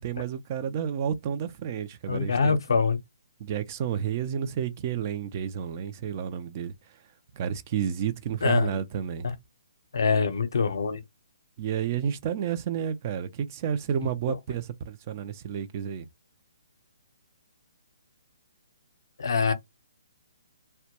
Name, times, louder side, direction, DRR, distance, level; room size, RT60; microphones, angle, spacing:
voice 1, 0.0-2.6 3.4-7.0 7.3-9.3 11.6-16.1, right 8 dB, 35° right, 0.4 m, -31 dB
voice 2, 2.1-3.0 8.4-8.8 9.2-9.3 9.9-11.0 19.2-19.5, left 5 dB, 75° left, 0.6 m, -24 dB
2.2 x 2.1 x 2.8 m
hypercardioid pair, 150°, 2 cm